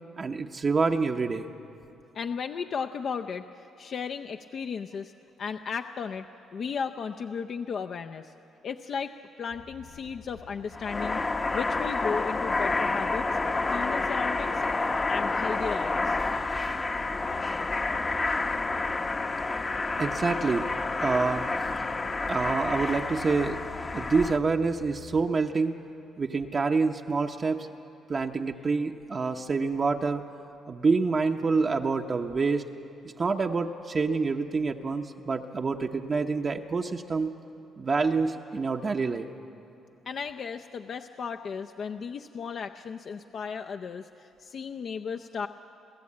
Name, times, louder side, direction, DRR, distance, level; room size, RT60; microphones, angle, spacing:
voice 1, 0.2-1.5 20.0-20.7 21.0-21.4 22.3-23.6 23.9-25.8 26.2-27.7 28.1-30.2 30.7-32.6 33.2-37.4 37.8-39.3, right 4 dB, 30° right, 4 dB, 0.8 m, -27 dB
voice 2, 2.1-5.1 5.4-6.3 6.5-8.3 8.6-9.1 9.4-11.2 11.5-13.3 13.7-14.7 15.1-16.2 40.1-45.5, left 6 dB, 45° left, 6 dB, 0.5 m, -35 dB
sound 1, 9.5-25.2, left 7 dB, 80° left, 4.7 m, -50 dB
sound 2, 10.7-24.4, left 3 dB, 25° left, 0.8 m, -29 dB
30.0 x 13.5 x 8.6 m, 2.7 s
cardioid pair, 130°, 0 cm